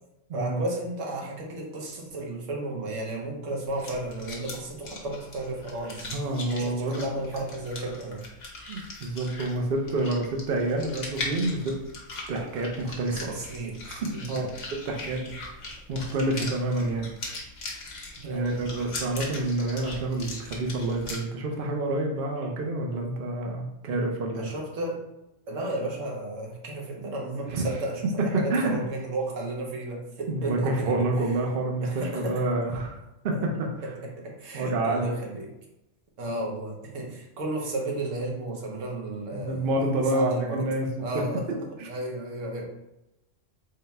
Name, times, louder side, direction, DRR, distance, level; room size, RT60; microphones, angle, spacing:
voice 1, 0.3-6.1 6.5-8.3 13.1-13.8 14.1-14.5 18.2-18.5 24.3-25.0 25.5-31.0 31.8-32.4 33.3-33.4 33.8-35.5 36.2-40.7 41.0-41.6 41.9-42.6, right 2 dB, 80° right, -1 dB, 1.2 m, -33 dB
sound 1, 3.7-21.2, left 2 dB, 75° left, 1.2 m, -40 dB
voice 2, 6.0-7.0 8.7-11.8 12.3-13.4 13.9-15.6 15.9-17.1 18.2-24.5 27.5-27.7 28.3-28.8 30.3-33.0 33.2-33.7 34.5-35.1 39.3-40.9 41.1-41.2 41.8-41.9, right 2 dB, 55° right, 1 dB, 0.7 m, -28 dB
4.0 x 2.2 x 4.1 m, 0.92 s
omnidirectional pair, 1.3 m